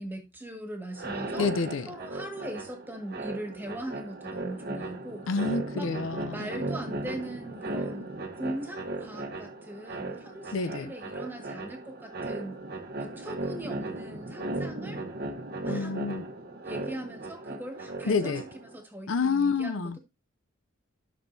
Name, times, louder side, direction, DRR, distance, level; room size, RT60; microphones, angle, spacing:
voice 1, 0.0-1.5 1.9-5.2 5.7-5.9 6.3-8.1 8.3-12.6 13.0-15.0 15.6-16.0 16.6-20.0, right 1 dB, 10° right, 1.7 m, -40 dB
sound 1, 0.9-18.8, right 2 dB, 50° right, 1.0 m, -37 dB
voice 2, 1.4-1.9 5.3-6.5 10.5-10.9 15.7-16.2 18.1-18.4 19.1-20.0, left 4 dB, 70° left, 0.5 m, -28 dB
12.5 x 6.2 x 2.7 m
head